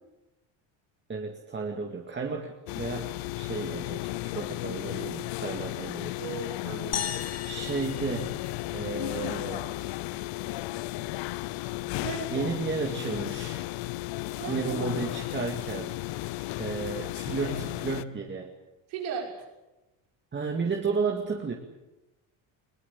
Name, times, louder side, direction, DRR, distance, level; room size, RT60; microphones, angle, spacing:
voice 1, 1.1-6.1 7.4-8.4 8.7-9.7 12.3-13.6 14.5-15.9 16.6-18.5 20.3-21.5, right 4 dB, 25° right, 2 dB, 2.1 m, -33 dB
sound 1, 2.7-18.0, left 18 dB, 80° left, 0.9 m, -34 dB
voice 2, 6.2-7.2 12.0-12.5 14.4-14.9 18.9-19.3, right 6 dB, 90° right, 0 dB, 6.5 m, -36 dB
sound 2, 6.9-9.4, left 8 dB, 35° left, 1.1 m, -37 dB
21.0 x 19.5 x 8.5 m, 0.99 s
cardioid pair, 115°, 45 cm